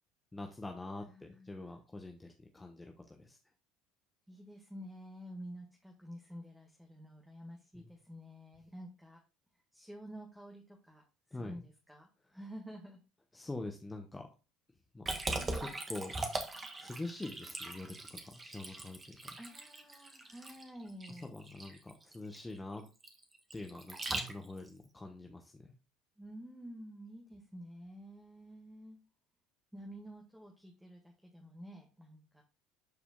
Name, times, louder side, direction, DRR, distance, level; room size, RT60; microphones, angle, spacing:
voice 1, 0.3-3.4 7.7-7.9 11.3-11.6 12.2-12.3 13.3-14.3 14.9-16.2 16.8-19.4 21.2-22.8 23.5-25.7, left 2 dB, 15° left, 3 dB, 1.0 m, -45 dB
voice 2, 1.1-1.6 4.3-9.2 9.7-11.0 11.4-13.0 15.3-15.7 19.4-21.3 26.2-29.0 29.7-32.4, equal, 5° right, 1 dB, 1.7 m, -50 dB
Liquid, 15.1-24.7, right 2 dB, 25° right, 1.7 m, -41 dB
12.0 x 5.0 x 2.3 m, 0.31 s
figure-of-eight pair, 60°, 0 cm